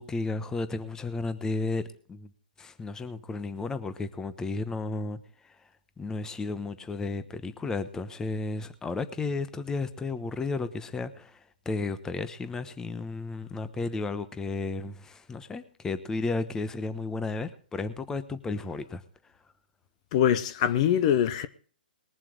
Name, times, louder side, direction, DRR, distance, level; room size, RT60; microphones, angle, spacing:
voice 1, 0.0-2.3 2.6-5.2 5.4-5.5 6.0-11.4 11.6-19.0, left 3 dB, 10° left, 1.0 m, -33 dB
voice 2, 20.1-21.5, left 10 dB, 45° left, 0.9 m, -23 dB
20.5 x 7.5 x 4.9 m
hypercardioid pair, 130°, 5 cm